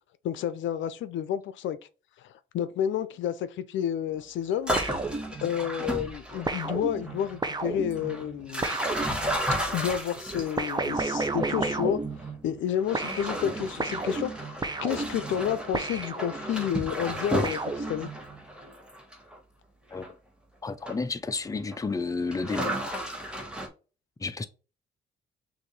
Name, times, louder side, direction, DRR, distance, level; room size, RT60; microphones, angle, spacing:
voice 1, 0.2-1.8 2.2-4.7 5.4-8.7 9.7-12.0 12.4-18.1, left 9 dB, 75° left, 0.5 m, -30 dB
sound 1, 4.5-6.8 7.0-7.4 7.9-11.5 12.1-12.3 12.8-19.4 19.9-20.1 20.9-21.0 21.5-21.8 22.3-23.7, equal, 5° right, 1.3 m, -33 dB
sound 2, 4.8-5.8 6.5-9.6 10.6-12.7 12.9-16.7 17.4-18.4, right 3 dB, 20° right, 0.7 m, -33 dB
voice 2, 20.6-22.8 24.2-24.4, left 4 dB, 15° left, 0.6 m, -31 dB
6.2 x 2.6 x 3.2 m
cardioid pair, 90°, 20 cm